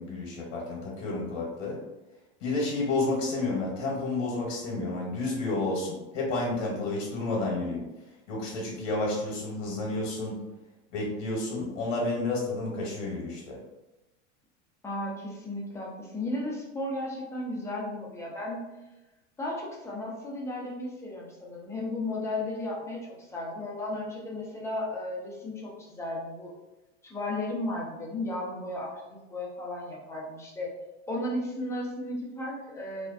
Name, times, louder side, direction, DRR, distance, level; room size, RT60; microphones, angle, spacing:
voice 1, 0.0-1.8 2.4-7.9 8.3-10.4 10.9-13.6, left 2 dB, 70° left, -3 dB, 0.9 m, -30 dB
voice 2, 14.8-18.6 19.4-26.5 27.0-30.7 31.1-33.1, left 1 dB, 10° left, -4 dB, 0.5 m, -34 dB
2.5 x 2.1 x 2.4 m, 1.0 s
hypercardioid pair, 115°, 38 cm